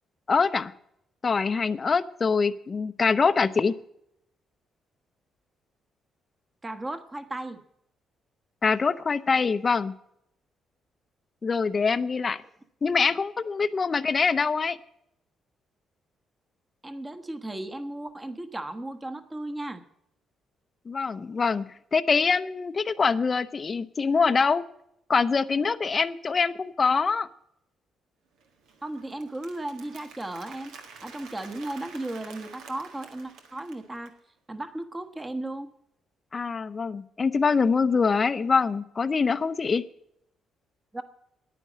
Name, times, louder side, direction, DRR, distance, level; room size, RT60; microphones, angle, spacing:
voice 1, 0.3-0.7 1.2-3.7 8.6-9.9 11.4-12.4 12.8-14.8 20.9-21.7 21.9-24.6 25.1-27.3 36.3-39.8, left 5 dB, 35° left, 11 dB, 0.6 m, -24 dB
voice 2, 6.6-7.6 16.8-19.8 28.8-30.7 31.0-34.1 34.5-35.7 40.9-41.0, right 1 dB, 20° right, 8 dB, 1.2 m, -35 dB
Applause, 28.4-34.2, right 5 dB, 90° right, 1.6 m, -49 dB
10.0 x 9.2 x 7.3 m, 0.75 s
cardioid pair, 90°, 0 cm